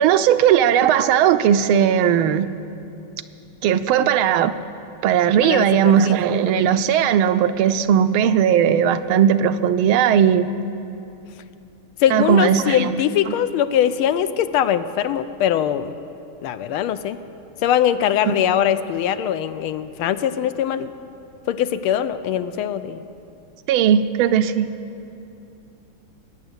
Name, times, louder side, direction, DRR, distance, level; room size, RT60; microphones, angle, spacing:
voice 1, 0.0-2.5 3.6-4.5 5.0-10.5 12.1-13.0 13.3-13.4 18.3-18.4 23.7-24.7, right 9 dB, 80° right, 11 dB, 1.4 m, -17 dB
voice 2, 5.4-6.1 6.5-6.6 12.0-15.9 16.4-17.2 17.6-20.9 21.5-23.0, left 10 dB, 80° left, 11 dB, 1.5 m, -22 dB
20.0 x 9.0 x 8.0 m, 2.7 s
omnidirectional pair, 2.4 m